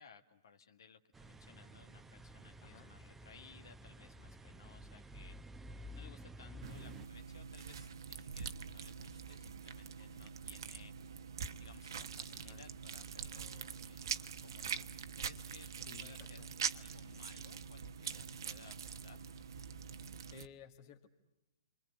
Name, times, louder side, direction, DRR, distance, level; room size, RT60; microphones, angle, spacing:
voice 1, 0.0-5.4 5.9-10.9 11.6-14.1 14.4-16.4 16.7-19.2, left 6 dB, 70° left, 7 dB, 1.6 m, -60 dB
sound 1, 1.1-7.1, equal, 10° right, 0.9 m, -52 dB
voice 2, 2.6-2.9 12.3-12.7 15.8-16.5 20.3-21.1, left 9 dB, 45° left, 3 dB, 1.8 m, -57 dB
sound 2, 6.6-20.5, right 7 dB, 65° right, 1.2 m, -44 dB
29.0 x 24.5 x 7.8 m, 1.0 s
figure-of-eight pair, 115°, 2 cm